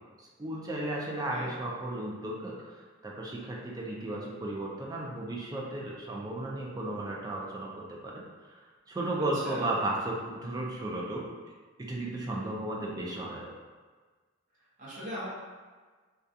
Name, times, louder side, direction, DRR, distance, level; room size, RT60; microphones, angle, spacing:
voice 1, 0.4-2.7 3.0-8.2 8.9-11.3 11.8-13.5, right 1 dB, 20° right, -3 dB, 0.4 m, -34 dB
voice 2, 9.3-9.6 14.8-15.3, equal, 45° right, -9 dB, 0.9 m, -39 dB
2.4 x 2.3 x 2.6 m, 1.4 s
head